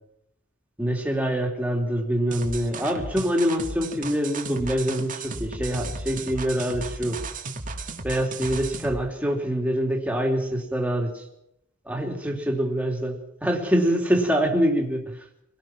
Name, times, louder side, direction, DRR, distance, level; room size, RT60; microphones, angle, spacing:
voice 1, 0.8-7.2 8.0-11.2 11.8-15.1, equal, 5° right, 0 dB, 3.3 m, -25 dB
sound 1, 2.3-9.0, right 3 dB, 40° right, 1.9 m, -35 dB
25.0 x 17.5 x 6.1 m, 0.79 s
head